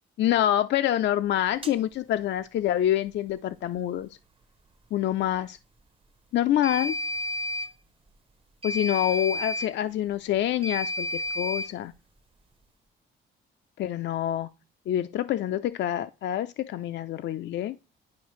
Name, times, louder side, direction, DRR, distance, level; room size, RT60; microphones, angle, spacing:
voice 1, 0.2-4.1 4.9-5.6 6.3-7.0 8.6-11.9 13.8-14.5 14.9-17.8, left 12 dB, 65° left, 0.4 m, -26 dB
sound 1, 1.6-1.8 6.6-7.7 8.6-9.7 10.6-11.7, left 1 dB, 25° right, 0.8 m, -31 dB
10.5 x 4.7 x 3.1 m
cardioid pair, 90°, 20 cm